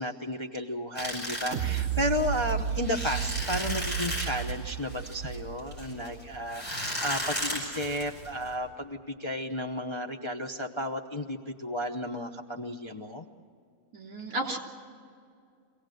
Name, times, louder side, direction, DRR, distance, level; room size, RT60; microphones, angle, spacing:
voice 1, 0.0-13.2, left 1 dB, 25° left, 2 dB, 0.8 m, -33 dB
sound 1, 1.0-8.5, equal, 5° left, 6.8 m, -35 dB
sound 2, 1.5-6.4 6.8-6.9, right 8 dB, 50° right, 1.7 m, -33 dB
voice 2, 13.9-14.6, right 1 dB, 70° right, 0 dB, 3.8 m, -34 dB
24.5 x 17.5 x 7.8 m, 2.3 s
omnidirectional pair, 1.6 m